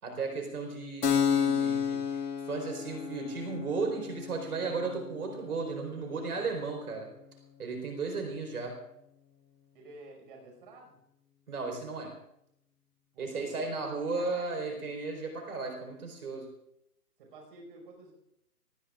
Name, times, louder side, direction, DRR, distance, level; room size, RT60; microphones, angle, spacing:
voice 1, 0.0-7.1 7.6-8.8 11.5-12.1 13.2-16.5, right 4 dB, 65° right, 2 dB, 4.5 m, -35 dB
Keyboard (musical), 1.0-8.3, left 7 dB, 70° left, 1.9 m, -33 dB
voice 2, 9.7-11.0 13.1-13.9 14.1-14.7 17.2-18.1, right 2 dB, 30° right, 1 dB, 5.5 m, -51 dB
25.0 x 19.0 x 2.5 m, 0.81 s
hypercardioid pair, 165°, 48 cm